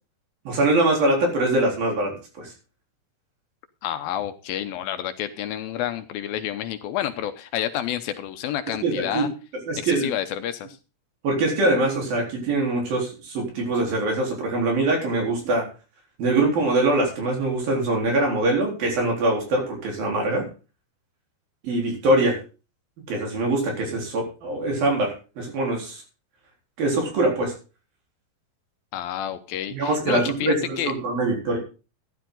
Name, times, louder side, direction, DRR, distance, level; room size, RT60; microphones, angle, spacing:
voice 1, 0.5-2.5 8.7-9.3 9.7-10.1 11.2-15.7 16.2-20.5 21.6-22.4 23.1-26.0 26.8-27.5 29.7-31.6, right 2 dB, 65° right, 1 dB, 5.6 m, -23 dB
voice 2, 3.8-9.3 9.8-10.8 28.9-30.9, left 11 dB, 75° left, 9 dB, 2.5 m, -29 dB
15.0 x 10.5 x 3.9 m, 0.33 s
omnidirectional pair, 4.5 m